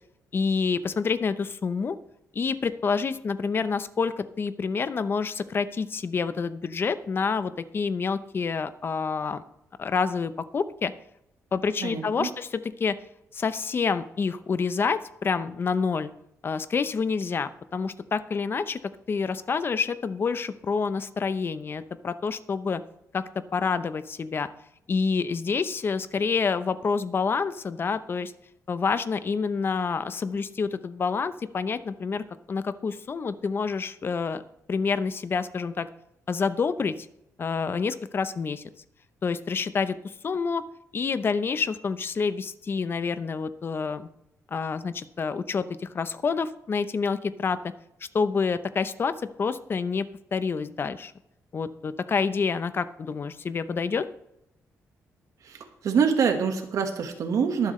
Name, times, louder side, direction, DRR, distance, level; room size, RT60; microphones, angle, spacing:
voice 1, 0.3-2.0 2.3-9.4 9.8-10.9 11.5-13.0 13.3-16.1 16.4-18.8 19.1-22.8 23.1-23.2 23.5-24.5 24.9-28.3 28.7-34.4 34.7-35.9 36.3-37.1 37.4-38.6 39.2-40.0 40.2-40.6 40.9-44.1 44.5-47.6 48.1-50.1 50.3-51.1 51.5-54.1, left 5 dB, 40° left, 13 dB, 0.7 m, -28 dB
voice 2, 11.8-12.3 55.4-57.7, right 6 dB, 70° right, 5 dB, 1.5 m, -25 dB
22.5 x 7.6 x 3.2 m, 0.82 s
cardioid pair, 110°, 6 cm